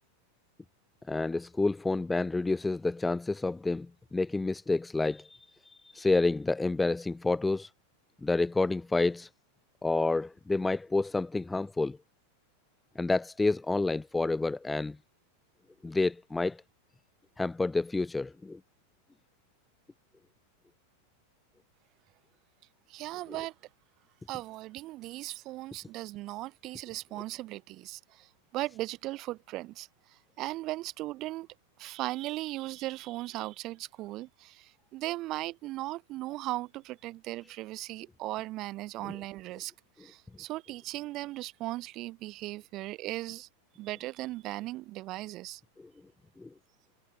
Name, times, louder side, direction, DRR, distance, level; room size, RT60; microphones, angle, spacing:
voice 1, 1.1-5.4 5.7-7.7 8.2-9.3 9.8-12.0 13.0-15.0 15.8-16.6 17.4-18.6 39.0-39.1 46.4-46.5, left 3 dB, 10° left, 1.0 m, -29 dB
voice 2, 22.9-23.5 24.3-31.5 31.8-39.7 40.0-43.5 43.8-45.6, right 18 dB, 35° right, 4.9 m, -38 dB
figure-of-eight pair, 90°, 0 cm